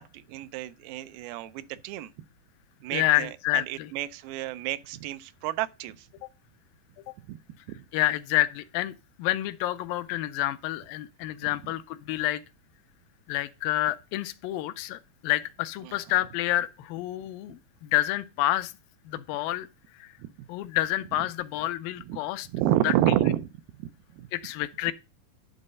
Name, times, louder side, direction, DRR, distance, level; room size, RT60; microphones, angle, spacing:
voice 1, 0.0-2.1 2.8-6.1 7.3-7.4 7.7-7.9 15.8-16.0 20.2-20.3 22.1-22.2 22.5-23.4 24.2-24.3, right 13 dB, 85° right, 2.5 m, -29 dB
voice 2, 2.9-3.9 7.9-12.4 13.3-18.7 19.1-19.7 20.0-20.1 20.5-22.5 22.8-22.9 24.3-24.9, left 15 dB, 80° left, 2.2 m, -28 dB
11.0 x 4.0 x 5.2 m
omnidirectional pair, 4.3 m